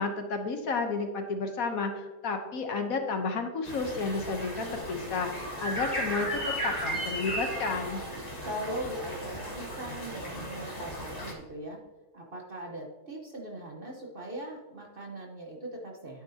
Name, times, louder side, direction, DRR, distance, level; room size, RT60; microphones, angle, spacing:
voice 1, 0.0-8.0, left 4 dB, 65° left, 5 dB, 1.3 m, -32 dB
sound 1, 3.6-11.3, equal, 25° left, 1.7 m, -36 dB
voice 2, 8.4-11.8 12.1-16.2, right 1 dB, 35° right, 0 dB, 1.2 m, -40 dB
10.5 x 9.0 x 2.8 m, 1.3 s
omnidirectional pair, 1.7 m